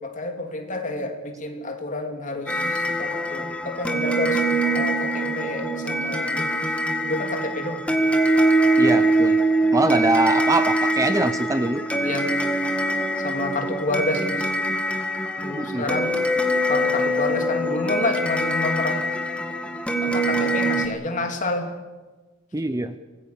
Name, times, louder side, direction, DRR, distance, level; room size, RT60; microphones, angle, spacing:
voice 1, 0.0-4.4 4.7-6.5 7.0-7.8 12.0-12.3 13.2-14.5 15.4-16.1 16.7-19.0 20.0-21.7, left 2 dB, 35° left, 4 dB, 3.1 m, -29 dB
sound 1, 2.5-20.9, right 1 dB, 5° left, 1.9 m, -23 dB
voice 2, 8.8-9.4 9.7-11.9 15.5-15.9 22.5-23.0, right 2 dB, 15° right, 11 dB, 0.6 m, -23 dB
25.5 x 19.0 x 7.1 m, 1.2 s
head